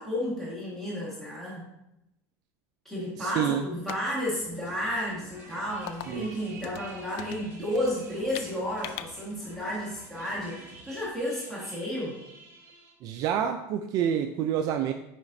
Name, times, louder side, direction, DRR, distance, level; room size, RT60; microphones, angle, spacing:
voice 1, 0.0-1.7 2.8-12.2, equal, 5° left, -7 dB, 1.6 m, -32 dB
voice 2, 3.2-3.6 6.1-6.3 13.0-14.9, right 9 dB, 45° right, 6 dB, 0.3 m, -28 dB
sound 1, 3.7-9.7, left 11 dB, 65° left, 0.3 m, -44 dB
sound 2, 4.3-11.1, right 1 dB, 45° left, 2.0 m, -53 dB
sound 3, 4.9-12.9, right 3 dB, 20° right, 1.6 m, -51 dB
7.2 x 5.0 x 2.6 m, 0.89 s
supercardioid pair, 135°, 9 cm